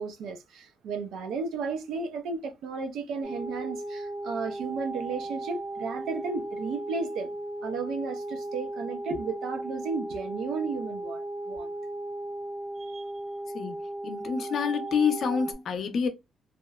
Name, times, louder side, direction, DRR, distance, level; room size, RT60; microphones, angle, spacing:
voice 1, 0.0-7.3 7.6-11.7 12.8-13.0, right 4 dB, 85° right, 0.5 m, -34 dB
sound 1, 3.2-15.5, right 1 dB, 10° right, 0.5 m, -36 dB
voice 2, 14.0-16.1, left 6 dB, 60° left, 0.6 m, -27 dB
2.9 x 2.0 x 2.2 m
cardioid pair, 130°, 0 cm